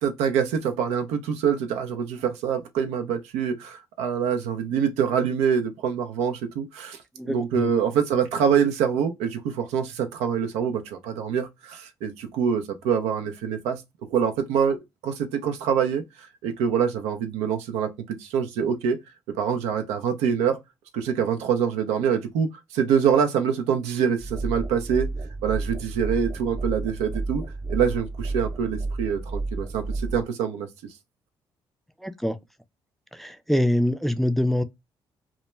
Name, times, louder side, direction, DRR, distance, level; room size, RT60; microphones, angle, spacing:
voice 1, 0.0-7.0 7.2-13.8 14.1-16.0 16.4-19.0 19.3-20.6 20.9-25.1 25.4-27.4 27.7-30.7, right 7 dB, 80° right, 0.4 m, -25 dB
voice 2, 7.2-7.7 32.0-32.4 33.1-34.6, left 1 dB, ahead, 0.4 m, -24 dB
sound 1, 24.2-30.2, right 3 dB, 40° right, 0.6 m, -31 dB
2.1 x 2.1 x 3.0 m
hypercardioid pair, 50°, 11 cm